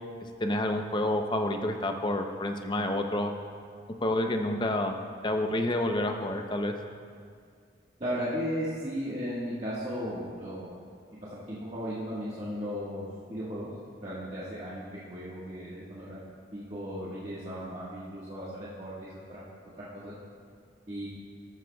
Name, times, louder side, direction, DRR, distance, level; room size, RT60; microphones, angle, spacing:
voice 1, 0.4-3.3 4.0-4.9 5.2-6.7, left 1 dB, 25° left, 4 dB, 0.6 m, -28 dB
voice 2, 8.0-10.7 11.2-13.0 13.3-13.7 14.0-14.8 15.1-16.2 16.5-18.9 19.3-19.4 19.7-20.1 20.9-21.1, equal, 35° right, -10 dB, 1.6 m, -35 dB
13.5 x 11.5 x 2.3 m, 2.2 s
head